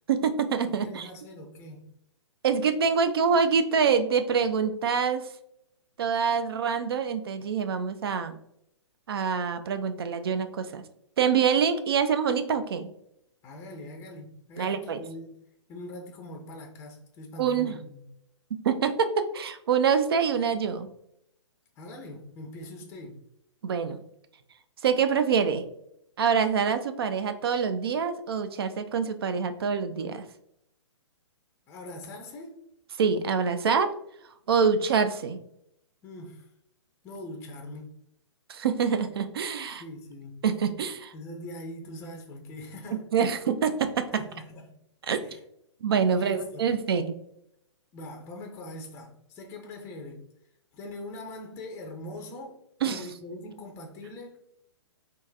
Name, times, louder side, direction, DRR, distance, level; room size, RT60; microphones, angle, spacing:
voice 1, 0.1-1.1 2.4-5.3 6.0-8.4 9.1-10.8 11.2-12.9 14.6-15.0 17.4-17.8 18.6-20.9 23.6-24.0 24.8-25.6 26.2-30.3 33.0-33.9 34.5-35.4 38.5-39.8 40.4-41.1 42.9-44.2 45.1-45.2 45.8-47.2 52.8-53.1, right 6 dB, 50° right, 0.4 m, -25 dB
voice 2, 0.7-1.9 13.4-15.3 15.7-18.1 21.8-23.2 31.7-32.7 36.0-36.5 37.0-38.0 39.7-40.4 41.1-43.1 44.1-44.7 45.2-45.4 46.1-46.7 47.9-50.2 50.7-54.4, left 1 dB, 15° left, 0.5 m, -42 dB
3.6 x 2.6 x 2.6 m
figure-of-eight pair, 120°, 16 cm